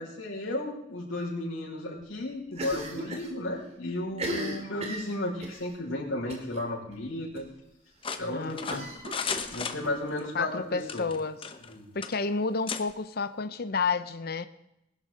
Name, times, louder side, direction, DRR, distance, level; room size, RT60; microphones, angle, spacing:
voice 1, 0.0-7.5 8.2-8.8 9.5-11.0 11.7-11.9, left 1 dB, 70° left, -5 dB, 5.3 m, -34 dB
Cough, 2.5-3.3 3.6-3.7 4.1-5.6 6.3-6.6 6.9-7.0 7.3-7.4 8.7-9.9, right 1 dB, 30° right, 2.2 m, -36 dB
sound 1, 8.0-10.3 10.8-11.7 12.0-12.2 12.7-12.8, left 6 dB, 25° left, 0.9 m, -34 dB
voice 2, 8.3-8.9 10.3-11.4 11.9-14.5, left 4 dB, 50° left, 11 dB, 0.6 m, -30 dB
20.0 x 11.5 x 3.8 m, 0.83 s
head